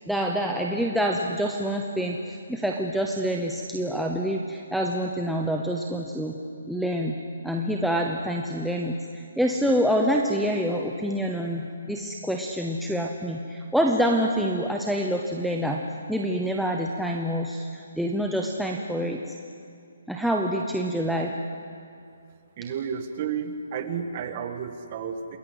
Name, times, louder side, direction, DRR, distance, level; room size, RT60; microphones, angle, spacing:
voice 1, 0.1-6.4 6.7-7.1 7.4-19.2 20.1-21.3, equal, ahead, 0 dB, 0.7 m, -26 dB
voice 2, 22.6-25.4, right 7 dB, 25° right, 7 dB, 1.6 m, -32 dB
28.5 x 21.0 x 8.1 m, 2.4 s
hypercardioid pair, 175°, 0 cm